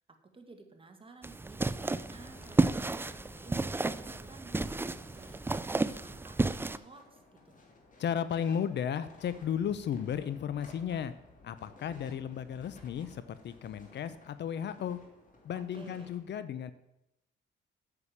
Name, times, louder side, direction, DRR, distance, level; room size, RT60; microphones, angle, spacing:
voice 1, 0.3-7.6 15.7-16.1, right 4 dB, 25° right, 4 dB, 1.8 m, -53 dB
sound 1, 1.2-6.8, right 3 dB, 10° right, 0.4 m, -32 dB
sound 2, 1.8-16.2, left 3 dB, 40° left, 2.8 m, -57 dB
voice 2, 8.0-11.1 11.4-15.0 15.4-16.7, left 8 dB, 60° left, 14 dB, 0.7 m, -34 dB
8.2 x 6.9 x 7.3 m, 0.86 s
cardioid pair, 90°, 20 cm